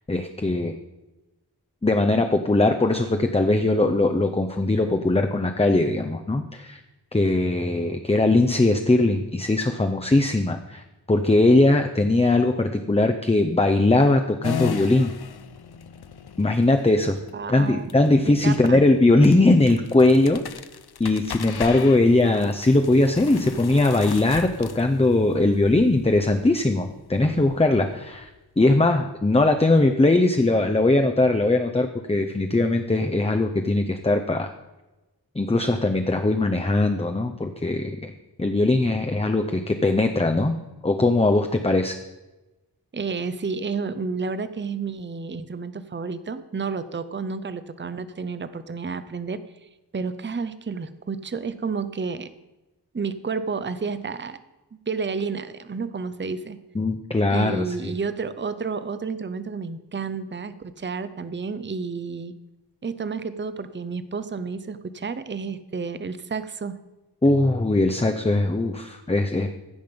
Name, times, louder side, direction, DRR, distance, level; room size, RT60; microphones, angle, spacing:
voice 1, 0.1-0.7 1.8-6.8 7.1-15.1 16.4-17.2 17.5-20.4 21.0-28.3 28.6-34.5 35.4-38.1 38.4-40.6 40.8-42.0 56.8-57.9 67.2-69.5, left 2 dB, 15° left, 6 dB, 0.6 m, -20 dB
sound 1, 14.4-28.7, left 8 dB, 65° left, 0.6 m, -38 dB
voice 2, 17.3-17.9 18.3-18.8 42.9-49.4 49.9-52.3 52.9-54.4 54.9-56.6 57.3-62.3 62.8-66.8, right 5 dB, 25° right, 13 dB, 0.6 m, -31 dB
15.0 x 5.3 x 5.2 m, 1.1 s
wide cardioid pair, 45°, 41 cm